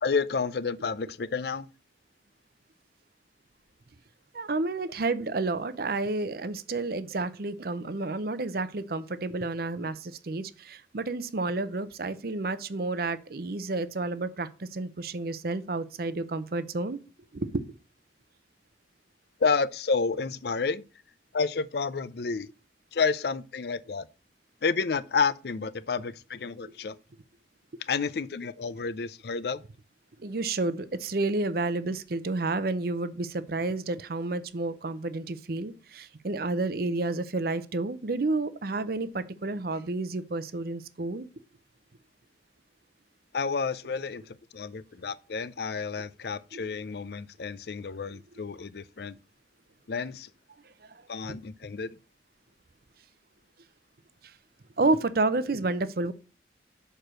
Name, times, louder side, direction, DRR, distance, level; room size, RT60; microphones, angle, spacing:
voice 1, 0.0-1.7 19.4-20.8 21.3-22.5 22.9-24.1 24.6-27.0 27.9-29.6 43.3-49.2 49.9-50.3 51.1-52.0, left 5 dB, 55° left, 0.5 m, -30 dB
voice 2, 4.3-17.0 17.3-17.6 30.2-41.3 46.5-46.7 50.9-51.0 54.2-54.3 54.8-56.1, right 2 dB, 55° right, 0.6 m, -30 dB
6.8 x 4.5 x 6.3 m
head